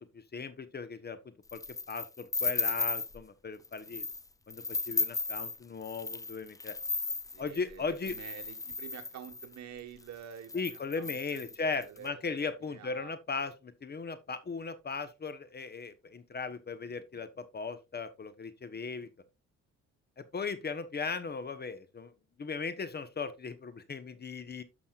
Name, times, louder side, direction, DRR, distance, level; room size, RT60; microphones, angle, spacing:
voice 1, 0.0-1.6 1.9-4.1 4.5-6.7 7.4-8.2 10.5-19.1 20.2-22.1 22.4-24.6, left 4 dB, 35° left, 1.0 m, -37 dB
sound 1, 1.5-3.2 3.6-4.2 4.5-9.6 10.1-10.2 10.4-12.0, left 3 dB, 10° left, 0.4 m, -35 dB
voice 2, 7.3-11.4 11.9-13.4, right 9 dB, 65° right, 1.4 m, -48 dB
11.5 x 6.2 x 2.4 m
cardioid pair, 90°, 30 cm